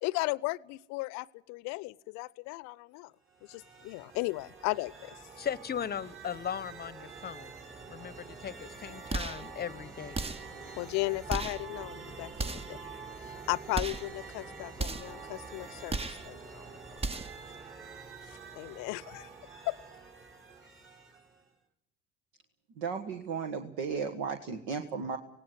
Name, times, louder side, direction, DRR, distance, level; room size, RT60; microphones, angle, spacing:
voice 1, 0.0-3.1 3.5-5.1 10.8-12.8 13.3-16.8 18.3-19.3 19.7-19.8, left 22 dB, 60° left, 22 dB, 0.7 m, -35 dB
sound 1, 3.3-21.5, right 4 dB, 40° right, 5.7 m, -47 dB
voice 2, 5.4-7.5 7.9-10.2, left 8 dB, 30° left, 22 dB, 0.9 m, -38 dB
sound 2, 9.1-9.5 10.1-10.6 11.3-11.7 12.3-12.8 13.7-14.1 14.8-15.2 15.9-16.3 17.0-17.4, right 3 dB, 20° right, 0.9 m, -35 dB
voice 3, 22.8-25.2, right 5 dB, 65° right, 6 dB, 1.5 m, -35 dB
18.0 x 17.5 x 9.7 m, 0.77 s
figure-of-eight pair, 55°, 30 cm